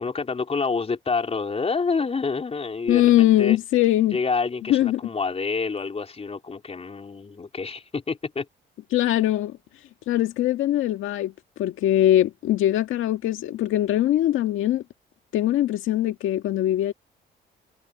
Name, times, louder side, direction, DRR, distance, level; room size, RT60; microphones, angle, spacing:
voice 1, 0.0-3.6 4.1-8.5, left 4 dB, 30° left, 3.7 m, -28 dB
voice 2, 2.9-4.2 4.7-5.0 8.9-9.5 10.1-11.3 11.6-14.8 15.3-16.9, left 13 dB, 85° left, 1.9 m, -21 dB
cardioid pair, 90°, 20 cm